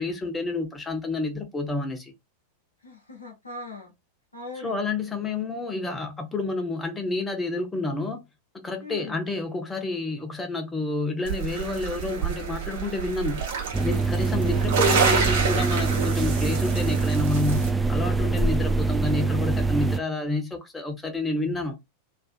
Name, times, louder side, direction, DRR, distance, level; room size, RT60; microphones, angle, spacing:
voice 1, 0.0-2.1 4.6-8.2 8.5-13.4 13.8-21.8, left 2 dB, 15° left, 0.7 m, -29 dB
voice 2, 2.8-3.9 4.3-4.8 8.8-9.2 14.4-15.0, left 2 dB, 85° left, 0.7 m, -40 dB
sound 1, 11.3-17.7, right 6 dB, 55° right, 0.9 m, -28 dB
sound 2, 13.7-20.0, right 3 dB, 10° right, 0.3 m, -24 dB
2.4 x 2.4 x 2.4 m
figure-of-eight pair, 90°, 0 cm